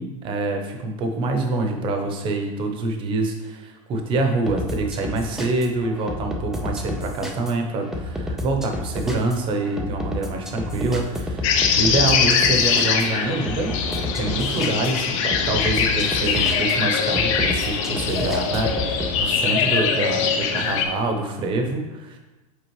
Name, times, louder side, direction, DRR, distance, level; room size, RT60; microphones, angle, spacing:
voice 1, 0.0-13.7 14.2-22.2, right 2 dB, 25° right, 4 dB, 0.8 m, -26 dB
sound 1, 4.5-19.2, left 1 dB, 5° right, 0.3 m, -31 dB
sound 2, 11.4-20.8, left 6 dB, 60° left, 0.7 m, -22 dB
8.0 x 3.9 x 3.1 m, 1.1 s
supercardioid pair, 165°, 19 cm